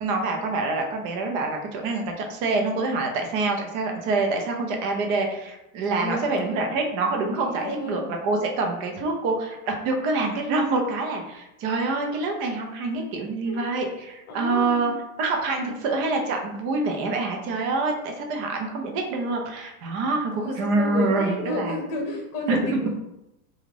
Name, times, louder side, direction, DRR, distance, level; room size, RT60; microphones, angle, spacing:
voice 1, 0.0-14.9 15.2-21.8 22.5-22.9, right 3 dB, 40° right, 2 dB, 0.6 m, -26 dB
voice 2, 5.9-6.7 7.4-8.2 13.4-13.6 14.3-14.9 20.3-22.9, left 1 dB, 65° left, 1 dB, 0.9 m, -32 dB
2.5 x 2.4 x 3.2 m, 0.88 s
supercardioid pair, 130°, 45 cm